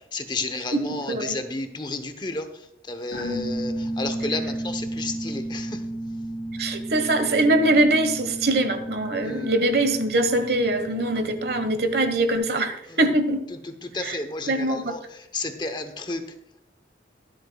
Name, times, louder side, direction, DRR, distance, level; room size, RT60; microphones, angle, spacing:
voice 1, 0.1-2.5 2.9-5.7 9.2-9.5 13.9-15.0 15.3-16.2, left 2 dB, 25° left, 8 dB, 0.9 m, -31 dB
voice 2, 0.7-1.4 6.6-13.4 13.9-14.2 14.5-14.9, right 2 dB, 65° right, 9 dB, 1.2 m, -23 dB
sound 1, 3.1-12.4, right 1 dB, 80° left, 2.1 m, -33 dB
23.5 x 8.0 x 2.3 m, 0.77 s
head